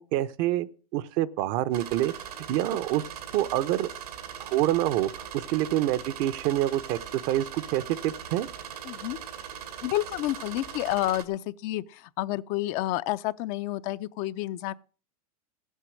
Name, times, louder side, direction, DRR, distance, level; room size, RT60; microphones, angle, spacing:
voice 1, 0.0-2.1 2.5-3.0 3.3-3.9 4.4-8.5, right 14 dB, 50° right, 0.8 m, -27 dB
sound 1, 1.7-11.2, right 9 dB, 90° right, 2.4 m, -40 dB
voice 2, 8.8-9.2 9.8-14.7, left 15 dB, 50° left, 0.6 m, -30 dB
15.0 x 8.2 x 6.2 m
hypercardioid pair, 120°, 19 cm